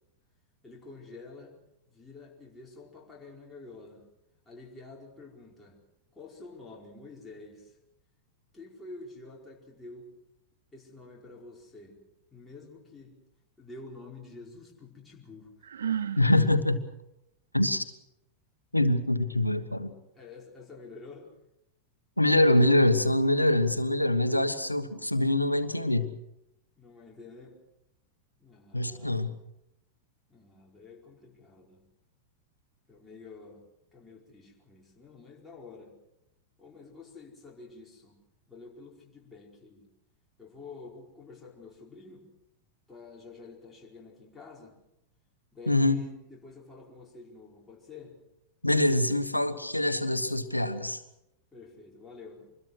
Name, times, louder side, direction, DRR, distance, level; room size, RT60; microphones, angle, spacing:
voice 1, 0.6-1.5 1.9-4.0 4.4-5.8 6.1-7.8 8.5-10.1 10.7-12.0 12.3-13.2 13.6-15.7 20.1-21.3 26.8-27.6 28.4-29.3 30.3-31.8 32.9-33.6 33.9-35.9 36.6-38.2 38.5-39.9 40.4-42.3 42.9-44.8 45.5-48.2 51.5-52.5, left 3 dB, 10° left, -3 dB, 4.9 m, -48 dB
Sigh, 15.6-16.3, right 8 dB, 65° right, 1.0 m, -31 dB
voice 2, 16.2-16.8 17.5-17.8 18.7-19.9 22.2-26.1 28.7-29.3 45.7-46.0 48.6-51.0, left 1 dB, 85° left, 11 dB, 1.4 m, -24 dB
25.5 x 21.5 x 6.4 m, 0.86 s
figure-of-eight pair, 90°, 0 cm